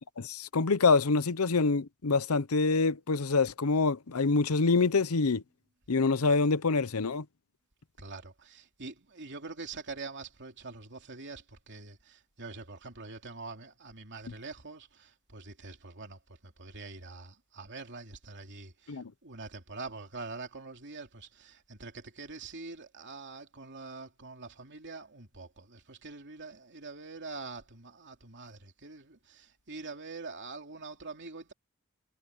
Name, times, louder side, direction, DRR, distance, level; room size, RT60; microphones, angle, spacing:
voice 1, 0.2-5.4 5.9-7.2 18.9-19.1, left 4 dB, 80° left, 0.8 m, -26 dB
voice 2, 8.0-31.5, right 3 dB, 55° right, 3.0 m, -45 dB
head